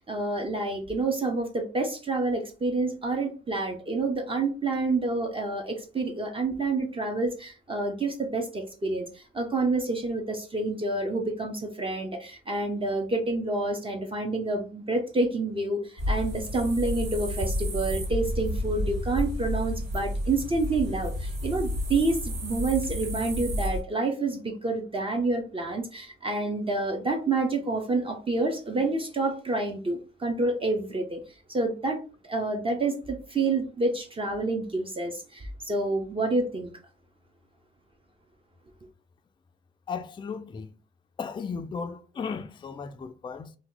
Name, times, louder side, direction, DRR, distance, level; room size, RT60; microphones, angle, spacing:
voice 1, 0.0-31.2 31.5-36.7, right 3 dB, 25° right, 0.6 m, -28 dB
sound 1, 16.0-23.8, left 1 dB, 65° right, 1.7 m, -31 dB
voice 2, 39.9-40.7 41.2-43.5, left 5 dB, 25° left, 0.4 m, -35 dB
2.8 x 2.2 x 3.8 m
cardioid pair, 90°, 20 cm